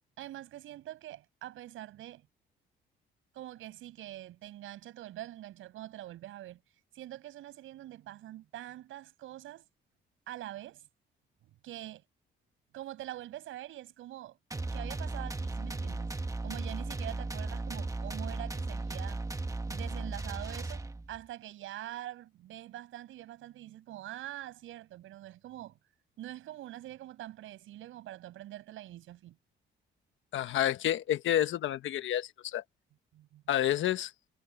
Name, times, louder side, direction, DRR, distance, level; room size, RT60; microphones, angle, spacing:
voice 1, 0.2-2.3 3.3-6.6 6.9-9.6 10.3-10.9 11.6-12.0 12.7-14.4 14.7-16.1 16.4-19.2 19.7-25.8 26.2-29.4 33.1-33.4, right 14 dB, 85° right, 7.6 m, -44 dB
sound 1, 14.5-21.2, right 2 dB, 15° right, 1.7 m, -36 dB
voice 2, 30.3-32.6 33.5-34.1, left 11 dB, 75° left, 1.3 m, -29 dB
cardioid pair, 90°, 20 cm